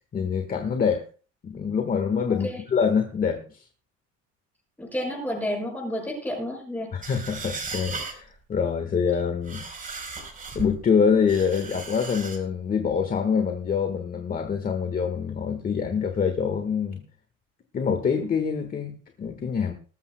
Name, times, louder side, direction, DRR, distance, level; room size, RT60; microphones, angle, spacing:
voice 1, 0.1-1.1 1.4-3.6 6.9-9.6 10.5-17.0 17.7-19.7, left 6 dB, 30° left, 1.5 m, -25 dB
voice 2, 4.8-6.9, equal, 5° left, 6.9 m, -30 dB
sound 1, 7.0-8.2 9.2-10.8 11.3-12.4, right 4 dB, 25° right, 3.9 m, -36 dB
19.5 x 14.0 x 2.2 m
cardioid pair, 145°, 29 cm